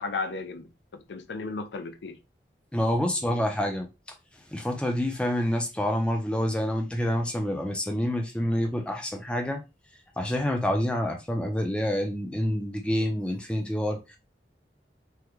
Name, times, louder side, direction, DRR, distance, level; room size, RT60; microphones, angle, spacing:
voice 1, 0.0-2.2, left 3 dB, 80° left, 0.4 m, -35 dB
voice 2, 2.7-3.9 4.5-9.6 10.2-14.2, equal, 5° left, 0.4 m, -27 dB
3.5 x 2.1 x 3.0 m
head